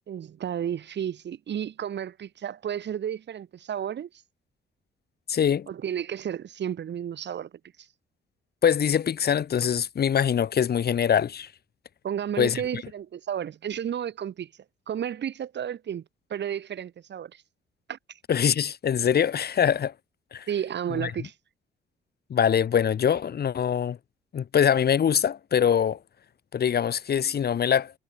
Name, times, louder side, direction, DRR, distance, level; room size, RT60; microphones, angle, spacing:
voice 1, 0.1-4.1 5.7-7.5 12.0-14.5 14.9-16.0 16.3-17.4 17.9-18.0 20.5-21.3, right 9 dB, 60° right, 6.7 m, -32 dB
voice 2, 5.3-5.7 8.6-11.5 12.4-12.6 18.3-19.9 20.3-20.4 20.9-21.1 22.3-24.0 24.3-26.0 26.5-28.0, left 8 dB, 55° left, 2.5 m, -23 dB
cardioid pair, 90°, 20 cm